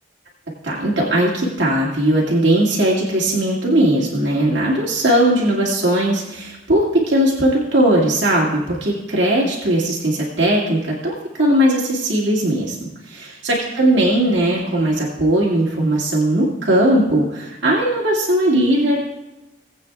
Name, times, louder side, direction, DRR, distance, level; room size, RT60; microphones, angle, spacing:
voice 1, 0.6-12.8 13.1-19.0, right 1 dB, 80° right, -5 dB, 2.1 m, -18 dB
19.5 x 8.4 x 2.4 m, 1.0 s
head